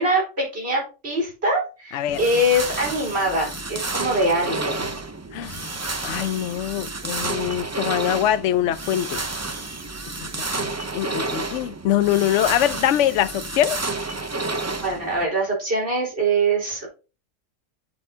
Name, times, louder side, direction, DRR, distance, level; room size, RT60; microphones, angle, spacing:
voice 1, 0.0-4.8 14.8-16.9, right 1 dB, 55° right, 4.4 m, -23 dB
sound 1, 2.1-15.2, right 3 dB, 20° right, 0.4 m, -30 dB
voice 2, 6.0-9.2 10.2-10.3 10.6-13.8, left 11 dB, 75° left, 0.9 m, -23 dB
8.0 x 7.9 x 2.8 m
omnidirectional pair, 1.3 m